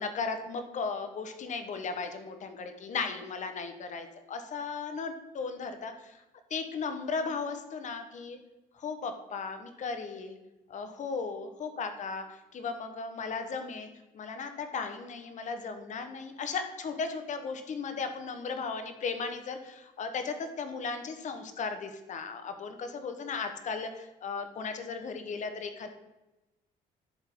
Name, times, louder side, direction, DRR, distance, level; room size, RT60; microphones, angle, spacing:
voice 1, 0.0-6.2 6.5-8.4 8.7-10.4 10.7-13.9 14.1-25.9, left 4 dB, 45° left, 7 dB, 1.1 m, -36 dB
11.0 x 3.7 x 4.6 m, 1.0 s
cardioid pair, 110°, 17 cm